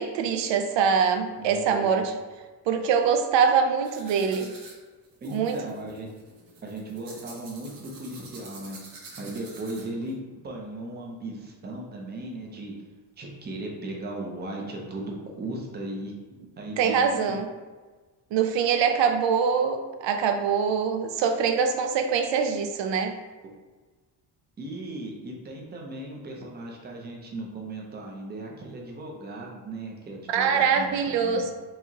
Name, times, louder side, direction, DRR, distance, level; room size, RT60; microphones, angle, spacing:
voice 1, 0.0-2.1 2.7-4.5 5.2-5.7 16.8-17.5 18.3-23.1 30.3-31.5, right 6 dB, 80° right, 6 dB, 0.5 m, -24 dB
voice 2, 1.4-2.0 5.2-6.1 6.6-8.8 9.2-12.7 13.2-16.2 16.6-17.4 24.6-31.4, right 2 dB, 25° right, -1 dB, 0.5 m, -37 dB
sound 1, 3.8-10.1, right 3 dB, 50° right, 0.9 m, -47 dB
4.6 x 2.9 x 2.8 m, 1.3 s
cardioid pair, 170°, 43 cm